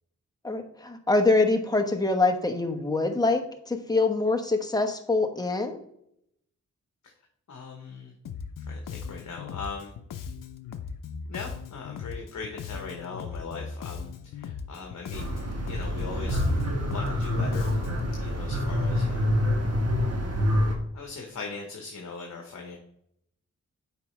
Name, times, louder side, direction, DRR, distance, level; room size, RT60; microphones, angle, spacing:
voice 1, 0.4-5.8, left 3 dB, 10° left, 3 dB, 1.0 m, -25 dB
voice 2, 7.5-8.1 8.7-9.9 11.3-15.3 15.7-17.7 18.2-19.3 20.9-22.8, left 4 dB, 60° left, 1 dB, 1.1 m, -40 dB
Bass guitar, 8.2-18.1, left 6 dB, 80° left, 0.6 m, -38 dB
sound 1, 15.1-20.7, left 1 dB, 50° right, 1.4 m, -26 dB
8.3 x 4.9 x 3.2 m, 0.73 s
cardioid pair, 80°, 32 cm